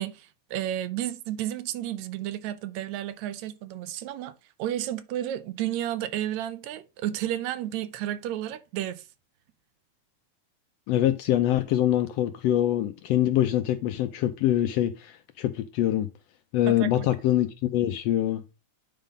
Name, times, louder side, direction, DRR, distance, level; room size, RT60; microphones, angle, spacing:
voice 1, 0.0-9.1 16.7-17.1, right 12 dB, 80° right, 1.9 m, -32 dB
voice 2, 10.9-16.1 16.5-18.4, left 12 dB, 85° left, 1.5 m, -24 dB
9.9 x 3.7 x 5.1 m
omnidirectional pair, 3.5 m